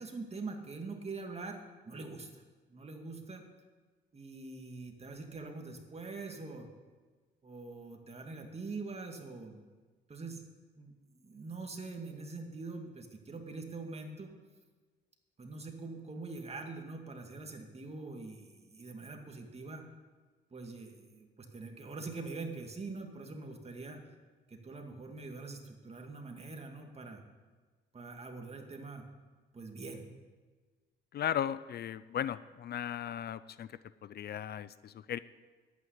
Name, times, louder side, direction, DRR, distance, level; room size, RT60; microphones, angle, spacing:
voice 1, 0.0-2.3 2.7-3.4 4.1-6.7 7.4-9.7 10.1-10.4 10.8-10.9 11.2-14.3 15.4-19.8 20.5-24.1 24.5-27.2 27.9-29.1 29.5-30.0, right 3 dB, 30° right, 3 dB, 2.3 m, -44 dB
voice 2, 31.1-35.2, left 10 dB, 55° left, 17 dB, 0.5 m, -37 dB
11.0 x 9.0 x 9.7 m, 1.4 s
cardioid pair, 90°, 20 cm